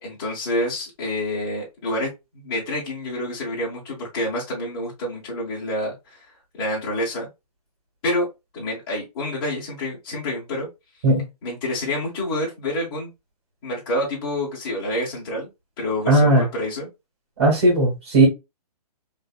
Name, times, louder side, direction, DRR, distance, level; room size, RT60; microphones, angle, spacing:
voice 1, 0.0-6.3 6.6-7.3 8.0-8.3 8.5-10.7 11.4-13.1 13.6-15.5 15.8-16.9, left 1 dB, 5° left, 0.4 m, -28 dB
voice 2, 16.1-16.5 17.4-18.3, right 2 dB, 40° right, 1.8 m, -16 dB
3.4 x 2.7 x 2.3 m
hypercardioid pair, 175°, 21 cm